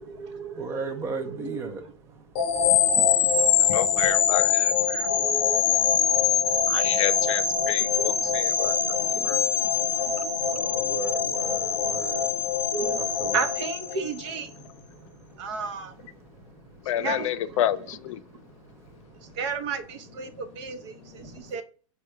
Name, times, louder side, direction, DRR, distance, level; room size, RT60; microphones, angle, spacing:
voice 1, 0.0-1.8 2.7-2.9 3.4-3.7 4.0-4.1 4.9-7.0 7.6-10.3 12.7-14.5 15.4-16.1 17.0-17.8 18.3-18.4 19.2-21.6, right 5 dB, 65° right, 0.7 m, -35 dB
voice 2, 0.5-1.8 6.1-6.7 9.2-9.4 9.6-9.8 10.0-12.7 12.9-13.4 15.0-15.4 16.4-16.6 18.8-19.0 19.2-19.3 21.2-21.5, right 4 dB, 15° right, 0.4 m, -37 dB
sound 1, 2.3-14.5, left 8 dB, 45° left, 0.7 m, -24 dB
voice 3, 2.6-5.2 5.7-9.5 9.8-10.3 16.8-18.2 21.3-21.4, left 12 dB, 80° left, 0.4 m, -31 dB
3.7 x 2.2 x 4.4 m
supercardioid pair, 155°, 16 cm